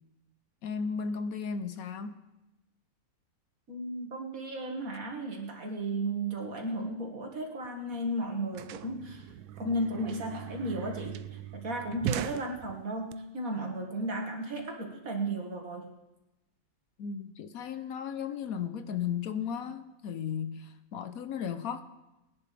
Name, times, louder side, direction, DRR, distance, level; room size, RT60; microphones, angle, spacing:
voice 1, 0.6-2.2 17.0-21.8, left 7 dB, 70° left, 1.2 m, -35 dB
voice 2, 3.7-9.2 9.6-15.9, right 1 dB, 60° right, 2.2 m, -34 dB
sound 1, 7.6-7.7 7.9-13.1, right 11 dB, 80° right, 1.1 m, -39 dB
20.0 x 11.0 x 3.4 m
omnidirectional pair, 1.6 m